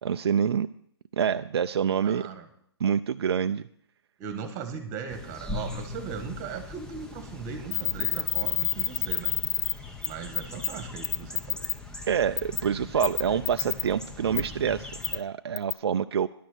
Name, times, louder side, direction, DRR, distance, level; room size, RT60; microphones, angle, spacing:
voice 1, 0.0-0.7 1.1-2.2 2.8-3.6 12.1-16.3, right 7 dB, 65° right, 8 dB, 0.5 m, -26 dB
voice 2, 2.0-2.4 4.2-9.3 10.0-11.6, right 6 dB, 25° right, 8 dB, 1.7 m, -38 dB
sound 1, 5.1-15.2, left 3 dB, 5° left, 0.9 m, -41 dB
sound 2, 7.7-9.7 10.0-10.1 10.3-10.7 11.0-11.7 12.4-12.6 13.0-13.8 14.3-14.4 15.0-15.2 15.6-15.7, left 11 dB, 55° left, 0.4 m, -27 dB
11.0 x 6.3 x 9.0 m, 0.67 s
hypercardioid pair, 145°, 14 cm